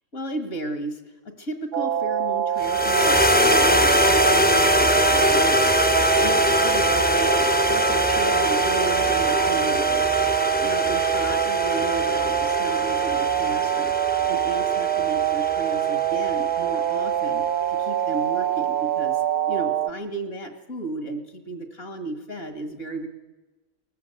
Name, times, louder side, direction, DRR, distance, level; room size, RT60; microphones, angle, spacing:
voice 1, 0.1-10.1 10.6-13.9 14.3-23.1, right 2 dB, 75° left, 7 dB, 2.6 m, -34 dB
sound 1, 1.7-19.9, right 11 dB, 85° right, 1.3 m, -24 dB
sound 2, 2.6-17.0, left 1 dB, 15° left, 0.3 m, -23 dB
22.0 x 19.5 x 8.1 m, 1.1 s
omnidirectional pair, 1.3 m